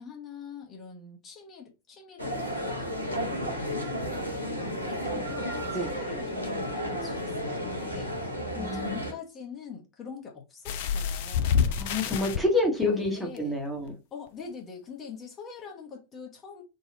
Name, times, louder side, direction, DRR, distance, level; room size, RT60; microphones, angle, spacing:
voice 1, 0.0-3.8 4.5-11.6 12.2-12.5 12.8-13.6 14.1-16.6, left 5 dB, 25° left, 1.0 m, -43 dB
sound 1, 2.2-9.1, equal, 85° left, 1.1 m, -33 dB
sound 2, 10.6-12.4 13.4-13.5 13.9-14.0, left 7 dB, 50° left, 0.4 m, -27 dB
voice 2, 11.8-13.9, left 2 dB, 5° left, 1.0 m, -28 dB
4.0 x 2.3 x 3.8 m
figure-of-eight pair, 90°, 0 cm